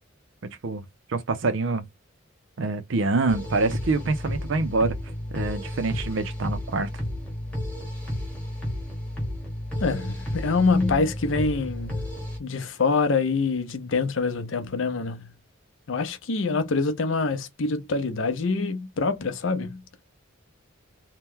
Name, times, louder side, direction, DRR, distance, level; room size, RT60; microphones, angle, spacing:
voice 1, 0.4-1.9 2.6-5.0 5.3-6.9, right 3 dB, 65° right, 0.5 m, -26 dB
sound 1, 3.3-12.4, left 1 dB, 5° left, 1.1 m, -32 dB
voice 2, 9.8-12.1 12.4-15.3 15.9-19.8, left 4 dB, 65° left, 0.6 m, -25 dB
2.9 x 2.2 x 3.5 m
head